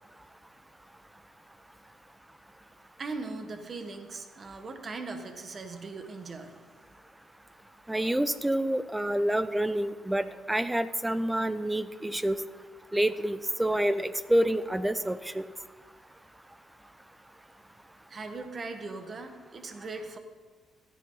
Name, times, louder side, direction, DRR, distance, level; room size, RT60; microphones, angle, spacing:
voice 1, 3.0-6.7 18.1-20.2, right 3 dB, 40° right, 5 dB, 1.6 m, -39 dB
voice 2, 7.9-12.4 12.9-15.5, right 1 dB, 10° right, 13 dB, 0.8 m, -28 dB
16.0 x 13.5 x 4.0 m, 1.4 s
cardioid pair, 90°, 0 cm